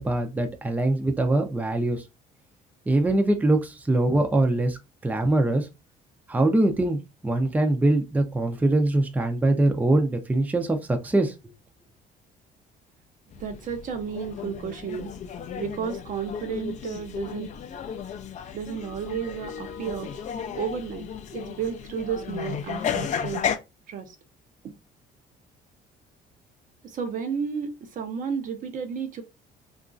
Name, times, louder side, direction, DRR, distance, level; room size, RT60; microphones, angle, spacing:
voice 1, 0.0-2.0 2.9-5.7 6.3-11.3, right 2 dB, 10° right, 0.5 m, -23 dB
sound 1, 13.3-23.6, left 8 dB, 45° left, 0.4 m, -34 dB
voice 2, 13.4-15.1 15.6-17.5 18.5-20.1 20.5-21.1 21.3-23.4 23.9-24.1 26.8-29.2, right 7 dB, 50° right, 0.6 m, -32 dB
2.9 x 2.4 x 2.5 m
cardioid pair, 110°, 17 cm